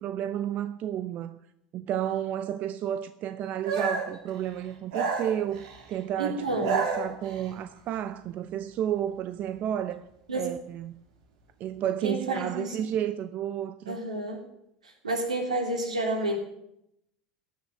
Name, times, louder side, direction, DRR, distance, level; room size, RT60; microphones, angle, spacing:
voice 1, 0.0-1.4 1.7-10.1 10.3-11.0 11.6-14.0, right 10 dB, 45° right, 0.7 m, -31 dB
sound 1, 3.7-4.2 4.9-5.8 6.4-7.5, right 5 dB, 70° right, 2.8 m, -30 dB
voice 2, 6.2-6.6 10.3-10.5 12.0-12.8 13.9-14.4 14.8-16.4, right 2 dB, 90° right, 3.2 m, -30 dB
17.0 x 6.5 x 9.1 m
hypercardioid pair, 80°, 4 cm